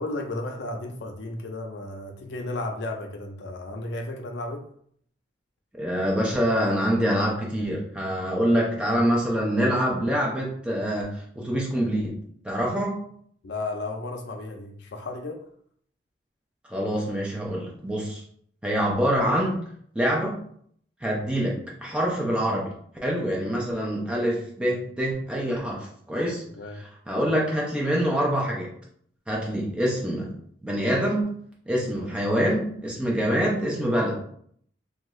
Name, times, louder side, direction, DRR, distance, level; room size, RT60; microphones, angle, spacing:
voice 1, 0.0-4.6 13.4-15.5 23.8-23.9 26.5-26.8 31.9-32.1, left 2 dB, 70° left, 4 dB, 0.5 m, -34 dB
voice 2, 5.8-12.2 12.4-13.0 16.7-18.2 18.6-19.6 19.9-20.4 21.0-22.7 23.0-26.4 27.1-28.7 29.3-30.3 30.6-31.3 31.7-34.2, equal, 5° right, -3 dB, 0.6 m, -25 dB
2.5 x 2.3 x 3.1 m, 0.63 s
head